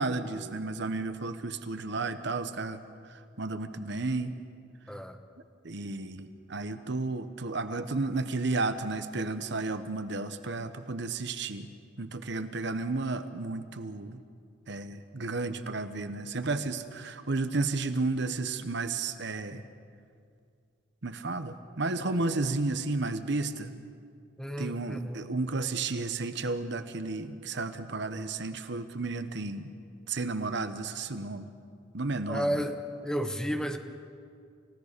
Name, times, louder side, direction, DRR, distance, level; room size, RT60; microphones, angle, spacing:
voice 1, 0.0-2.8 3.4-4.3 5.6-11.7 12.0-14.2 14.7-19.6 21.0-23.7 24.6-29.7 30.1-31.5 31.9-32.5, right 3 dB, 65° right, 10 dB, 1.1 m, -32 dB
voice 2, 24.4-25.2 32.3-33.8, equal, 5° left, 6 dB, 1.0 m, -32 dB
29.5 x 16.5 x 6.8 m, 2.3 s
head